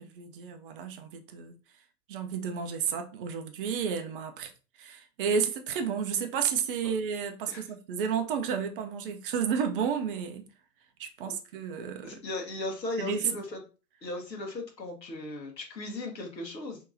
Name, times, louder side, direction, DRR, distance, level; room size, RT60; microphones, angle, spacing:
voice 1, 0.0-1.5 2.1-4.5 4.8-10.4 11.0-12.2 13.0-13.3, right 7 dB, 35° right, 0.5 m, -31 dB
voice 2, 12.0-13.6 14.0-16.8, left 2 dB, 90° left, 1.1 m, -37 dB
3.6 x 2.8 x 2.5 m
figure-of-eight pair, 110°, 49 cm